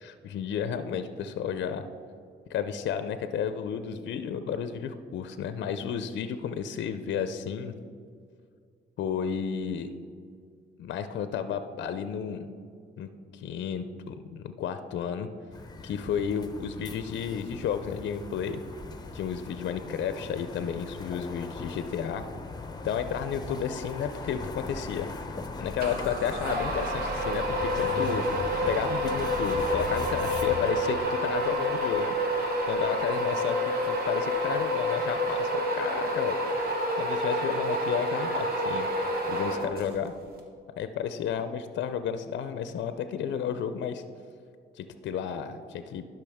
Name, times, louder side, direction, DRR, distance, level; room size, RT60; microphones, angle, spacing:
voice 1, 0.0-1.8 2.5-7.7 9.0-9.9 10.8-12.5 13.0-15.3 15.8-18.6 19.1-22.2 22.8-25.1 25.6-28.2 28.7-32.1 32.7-33.6 33.9-36.4 37.0-38.9 39.3-40.1 40.8-44.0 44.7-46.1, left 8 dB, 65° left, 10 dB, 0.5 m, -32 dB
sound 1, 15.5-30.7, left 3 dB, 20° left, 0.7 m, -39 dB
sound 2, 25.8-40.1, equal, 50° right, 1.5 m, -28 dB
11.5 x 5.7 x 3.5 m, 2.3 s
cardioid pair, 90°, 20 cm